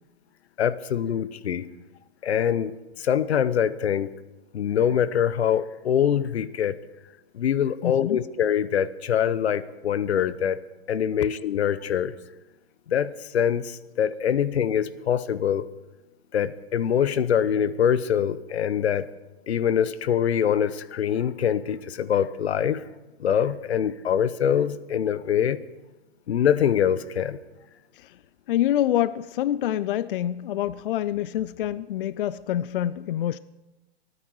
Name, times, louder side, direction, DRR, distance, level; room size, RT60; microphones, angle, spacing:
voice 1, 0.6-1.7 2.2-4.1 4.5-6.7 7.3-10.6 10.9-12.1 12.9-15.7 16.3-19.1 19.5-22.8 23.2-25.6 26.3-27.4, left 9 dB, 90° left, 0.9 m, -24 dB
voice 2, 7.8-8.2 27.9-28.2 28.5-33.4, left 12 dB, 55° left, 0.5 m, -26 dB
25.5 x 9.7 x 4.7 m
hypercardioid pair, 150°, 31 cm